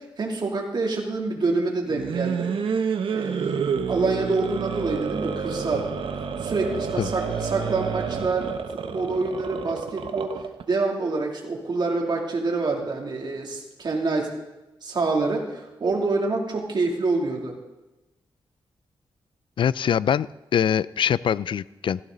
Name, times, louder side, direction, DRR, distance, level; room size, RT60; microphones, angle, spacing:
voice 1, 0.0-2.5 3.1-5.9 6.4-8.5 8.9-10.3 10.7-14.3 14.8-17.5, right 3 dB, 55° right, 0 dB, 2.8 m, -26 dB
sound 1, 1.9-10.6, right 6 dB, 70° right, 1.1 m, -29 dB
voice 2, 19.6-22.0, left 8 dB, 65° left, 20 dB, 0.4 m, -23 dB
15.5 x 14.5 x 3.9 m, 1.0 s
cardioid pair, 95°, 9 cm